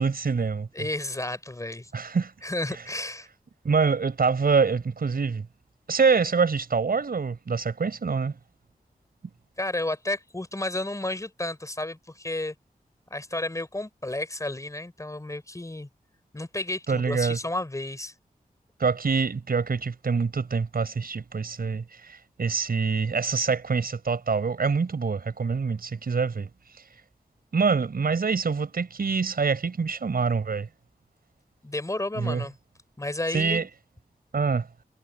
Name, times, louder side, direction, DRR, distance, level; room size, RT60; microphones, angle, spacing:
voice 1, 0.0-0.7 1.9-2.3 3.6-5.5 5.9-8.4 16.9-17.4 18.8-26.5 27.5-30.7 32.2-32.4 33.3-33.7 34.3-34.7, right 5 dB, 75° right, 6.4 m, -25 dB
voice 2, 0.7-1.9 2.4-3.3 9.6-12.5 13.1-15.9 16.3-18.1 31.6-32.6 33.0-33.6, left 2 dB, 20° left, 4.5 m, -32 dB
wide cardioid pair, 100°, 15 cm